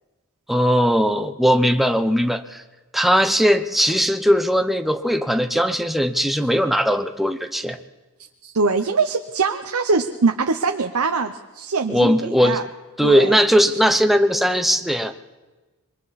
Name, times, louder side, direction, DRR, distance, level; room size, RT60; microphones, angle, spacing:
voice 1, 0.5-2.6 2.9-7.8 11.9-12.6 13.0-15.1, equal, ahead, 7 dB, 0.9 m, -19 dB
voice 2, 8.4-12.6 13.0-13.4 13.7-13.8, right 4 dB, 70° right, 5 dB, 0.9 m, -23 dB
26.5 x 23.5 x 4.2 m, 1.2 s
head